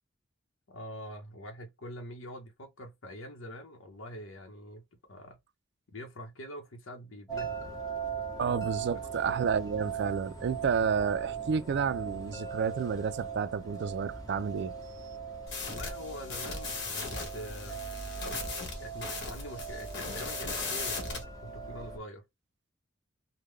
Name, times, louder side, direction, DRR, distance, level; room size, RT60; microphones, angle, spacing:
voice 1, 0.7-5.4 5.9-7.8 8.5-8.6 8.9-9.1 15.6-17.8 18.8-22.2, equal, 85° left, 0.8 m, -45 dB
sound 1, 7.3-22.0, right 6 dB, 20° left, 0.8 m, -39 dB
voice 2, 8.4-14.7, right 6 dB, 60° right, 0.3 m, -30 dB
sound 2, 15.5-21.2, left 3 dB, 60° left, 1.4 m, -37 dB
3.7 x 2.1 x 3.1 m
head